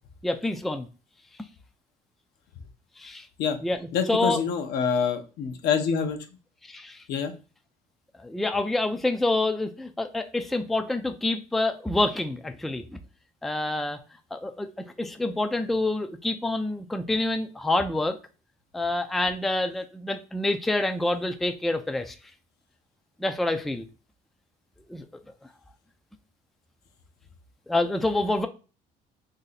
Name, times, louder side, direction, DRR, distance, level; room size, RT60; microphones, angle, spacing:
voice 1, 0.2-0.9 3.0-3.3 3.6-3.8 4.1-4.4 6.7-7.0 8.2-12.8 13.4-14.0 14.3-14.7 15.0-18.2 18.7-22.1 23.2-23.9 24.9-25.0 27.7-28.5, left 2 dB, ahead, 6 dB, 0.3 m, -27 dB
voice 2, 3.9-6.2 7.1-7.3, left 6 dB, 75° left, 6 dB, 0.7 m, -26 dB
2.8 x 2.7 x 3.9 m, 0.34 s
cardioid pair, 110°, 17 cm